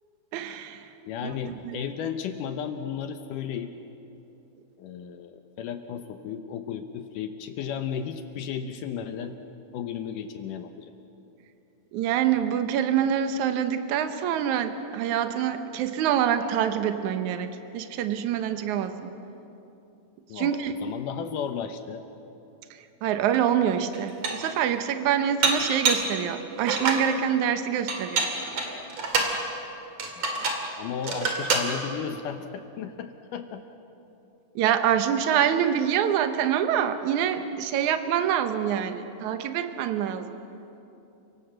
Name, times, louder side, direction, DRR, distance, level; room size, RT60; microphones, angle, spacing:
voice 1, 0.3-0.9 1.2-1.3 1.6-1.8 11.9-19.1 20.3-20.8 23.0-28.3 34.6-40.3, right 9 dB, 80° right, 9 dB, 1.7 m, -26 dB
voice 2, 1.0-3.7 4.8-9.3 9.7-10.9 20.3-22.0 30.2-30.4 30.8-33.6, left 7 dB, 75° left, 7 dB, 1.9 m, -34 dB
Dishes pots and pans, 23.3-23.4 23.9-24.5 25.4-26.1 26.6-27.1 27.9-29.4 30.0-30.7 31.0-31.7, right 3 dB, 45° right, 3.0 m, -27 dB
30.0 x 18.0 x 7.8 m, 2.9 s
omnidirectional pair, 4.9 m